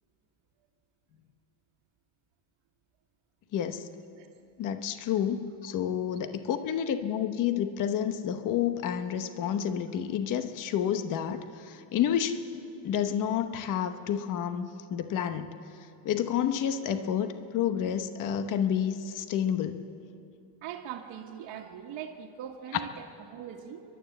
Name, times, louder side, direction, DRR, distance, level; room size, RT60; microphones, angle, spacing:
voice 1, 3.5-3.9 4.6-12.4 12.8-15.5 16.0-19.8, left 9 dB, 40° left, 9 dB, 1.0 m, -29 dB
voice 2, 20.6-23.8, right 9 dB, 55° right, -3 dB, 1.7 m, -41 dB
29.5 x 12.0 x 8.0 m, 2.6 s
cardioid pair, 175°, 49 cm